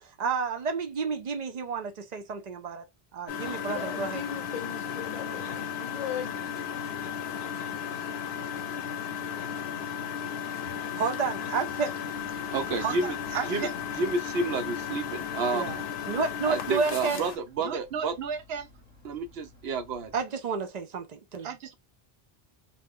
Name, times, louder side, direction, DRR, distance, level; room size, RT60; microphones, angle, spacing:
voice 1, 0.0-2.8 3.1-4.2 11.0-11.9 15.5-17.2 20.1-21.5, right 5 dB, 50° right, 0.6 m, -31 dB
Engine, 3.3-17.4, left 8 dB, 80° left, 0.8 m, -35 dB
voice 2, 3.6-6.3, left 8 dB, 45° left, 0.6 m, -38 dB
sound 1, 12.1-20.2, left 2 dB, 10° right, 0.9 m, -57 dB
voice 3, 12.5-15.7 16.5-18.7 19.0-20.1 21.4-21.7, right 4 dB, 85° right, 0.9 m, -30 dB
2.3 x 2.0 x 3.5 m
omnidirectional pair, 1.0 m